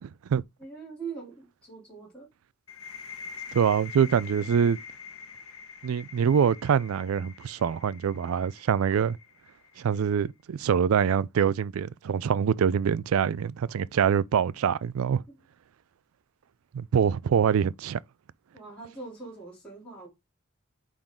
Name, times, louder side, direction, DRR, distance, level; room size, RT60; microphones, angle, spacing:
voice 1, 0.0-0.4 3.5-4.8 5.8-9.2 9.8-15.2 16.7-18.0, right 7 dB, 75° right, 0.4 m, -25 dB
voice 2, 0.6-2.3 15.3-15.4 18.5-20.1, right 4 dB, 5° left, 2.9 m, -42 dB
sound 1, 2.7-10.2, left 6 dB, 80° left, 1.3 m, -45 dB
8.8 x 3.9 x 3.7 m
head